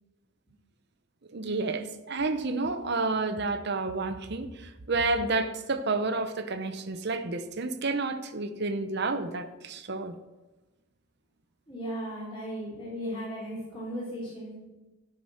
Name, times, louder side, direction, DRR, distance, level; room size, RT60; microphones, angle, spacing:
voice 1, 1.3-10.1, right 3 dB, 55° right, 0.8 m, -30 dB
voice 2, 11.7-14.6, equal, 25° left, 3.7 m, -36 dB
13.5 x 6.0 x 6.4 m
head